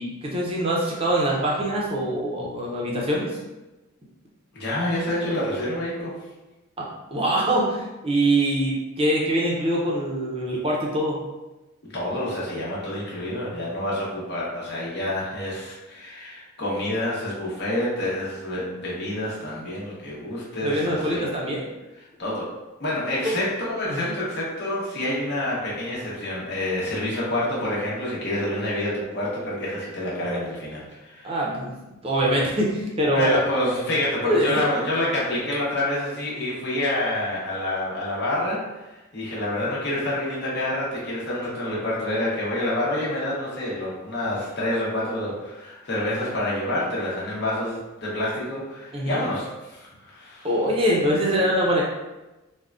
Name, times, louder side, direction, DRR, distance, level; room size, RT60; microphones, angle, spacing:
voice 1, 0.0-3.4 6.8-11.2 20.6-21.6 23.2-23.4 23.9-24.1 31.2-31.7 32.0-33.4 34.2-34.6 48.9-49.2 50.4-51.8, right 1 dB, 25° right, -3 dB, 0.5 m, -24 dB
voice 2, 4.5-6.2 11.9-21.3 22.2-22.5 22.8-31.4 33.1-50.5, left 1 dB, 50° left, -6 dB, 0.9 m, -28 dB
3.5 x 2.1 x 2.4 m, 1.1 s
head